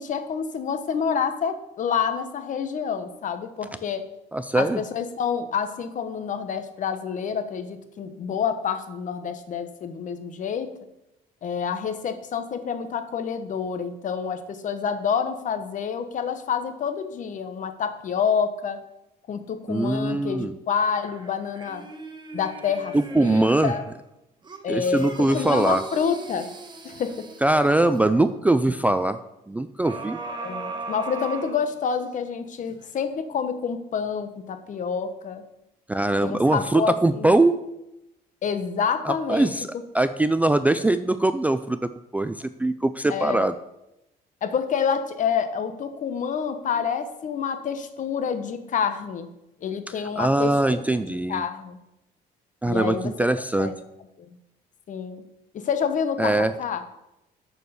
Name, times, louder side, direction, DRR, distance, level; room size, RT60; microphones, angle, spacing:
voice 1, 0.0-4.1 4.5-10.7 11.4-18.8 19.3-21.9 22.3-23.8 24.6-26.5 26.8-27.3 30.4-35.4 36.2-37.4 38.4-39.5 43.1-43.5 44.4-49.3 49.6-51.8 52.7-53.1 53.6-53.7 54.2-54.3 54.9-55.2 55.5-56.8, left 6 dB, 50° left, 9 dB, 1.1 m, -28 dB
voice 2, 4.3-4.8 19.7-20.5 22.9-23.7 24.7-25.8 27.4-29.2 29.5-30.2 35.9-37.6 39.0-39.7 39.9-43.6 50.2-51.4 52.6-53.7 56.2-56.5, right 2 dB, 10° right, 11 dB, 0.4 m, -22 dB
sound 1, 20.8-23.9 24.4-28.1 29.8-32.2 32.7-32.8, right 3 dB, 25° right, 1.4 m, -38 dB
6.8 x 6.4 x 7.0 m, 0.88 s
cardioid pair, 110°, 17 cm